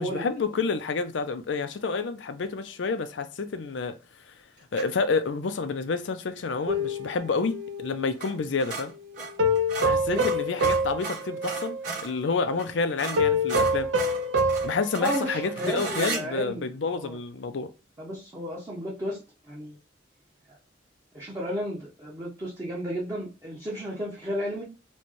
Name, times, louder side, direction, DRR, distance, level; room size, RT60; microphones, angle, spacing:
voice 1, 0.0-3.9 4.7-8.9 9.8-11.8 12.0-13.9 14.6-17.7, left 4 dB, 75° left, 0.5 m, -29 dB
sound 1, 4.7-5.0 8.1-8.3 8.6-12.1 12.6-12.7 13.0-16.2, right 4 dB, 50° right, 1.6 m, -35 dB
sound 2, 6.7-8.2 9.4-12.0 12.3-12.5 13.2-15.7 16.1-16.2, left 1 dB, 75° right, 0.6 m, -26 dB
voice 2, 15.0-16.7 16.9-17.2 18.0-19.2 19.5-19.8 20.5-20.6 21.1-24.6, equal, 20° right, 0.8 m, -33 dB
4.2 x 2.2 x 3.1 m
head